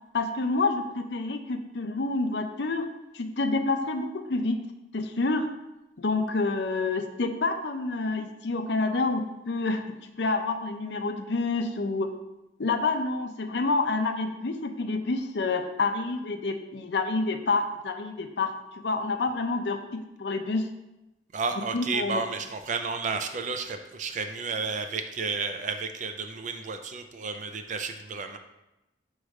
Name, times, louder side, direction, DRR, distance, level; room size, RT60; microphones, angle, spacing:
voice 1, 0.1-2.9 3.1-4.6 4.9-5.5 6.0-12.1 12.6-20.7 21.6-22.2, left 3 dB, 70° left, 6 dB, 0.6 m, -28 dB
voice 2, 21.3-28.4, right 4 dB, 45° right, 7 dB, 0.4 m, -32 dB
6.5 x 3.1 x 4.8 m, 0.94 s
head